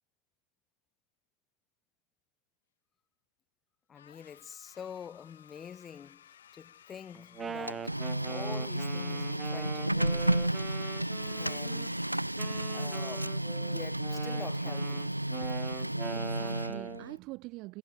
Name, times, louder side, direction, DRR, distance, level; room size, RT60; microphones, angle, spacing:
sound 1, 3.9-13.5, left 10 dB, 65° left, 7.3 m, -57 dB
voice 1, 3.9-8.0 8.3-10.6 11.4-12.0 12.7-15.1, left 8 dB, 20° left, 7.1 m, -46 dB
Wind instrument woodwind instrument, 7.1-11.9 12.4-17.1, right 6 dB, 20° right, 0.9 m, -42 dB
Printer, 7.4-17.2, right 1 dB, 85° right, 0.9 m, -32 dB
voice 2, 16.1-17.8, right 22 dB, 40° right, 1.1 m, -45 dB
figure-of-eight pair, 90°, 0 cm